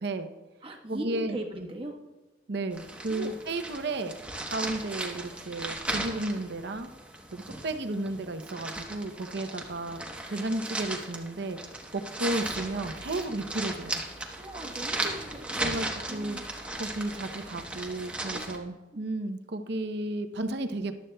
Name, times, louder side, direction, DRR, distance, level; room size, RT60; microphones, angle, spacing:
voice 1, 0.0-0.3 0.9-1.4 2.5-4.2 4.5-6.9 7.3-10.0 10.3-11.6 11.9-14.0 15.6-16.4 16.8-20.9, right 2 dB, 60° right, 8 dB, 0.7 m, -33 dB
voice 2, 0.6-2.0 3.1-3.4 14.4-16.4 18.3-18.6 18.9-19.0, right 1 dB, 30° right, 0 dB, 1.2 m, -39 dB
sound 1, 2.7-18.6, right 2 dB, 5° right, 1.0 m, -37 dB
14.0 x 11.5 x 2.3 m, 1.1 s
head